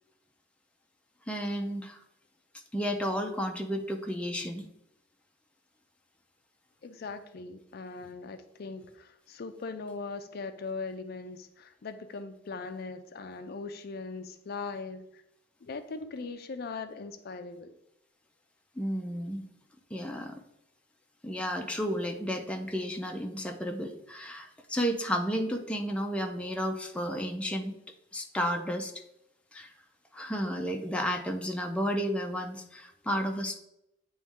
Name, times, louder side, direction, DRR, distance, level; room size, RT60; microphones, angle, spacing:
voice 1, 1.3-2.0 2.7-4.7 18.8-19.4 19.9-20.4 21.2-27.7 28.1-28.9 29.5-29.7 30.1-33.6, equal, 5° left, 2 dB, 0.5 m, -32 dB
voice 2, 6.8-15.2 15.6-17.8, left 4 dB, 55° left, 9 dB, 0.4 m, -40 dB
8.6 x 3.1 x 3.6 m, 0.82 s
head